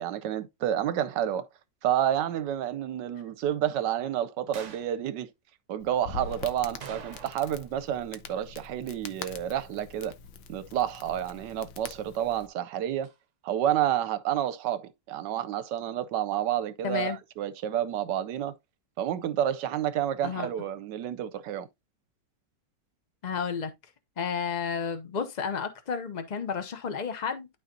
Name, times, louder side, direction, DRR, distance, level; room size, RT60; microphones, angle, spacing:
voice 1, 0.0-1.5 1.8-5.3 5.7-10.1 10.5-13.1 13.4-18.5 19.0-21.7, right 11 dB, 75° right, 1.2 m, -29 dB
sound 1, 4.5-5.0 6.8-7.7 7.9-8.0 13.0-13.2, right 7 dB, 55° right, 0.9 m, -44 dB
Crackle, 5.8-12.5, left 5 dB, 90° left, 1.5 m, -44 dB
voice 2, 16.8-17.2 20.2-20.5 23.2-23.7 24.2-27.5, left 6 dB, 65° left, 0.4 m, -31 dB
12.0 x 4.0 x 2.6 m
omnidirectional pair, 2.0 m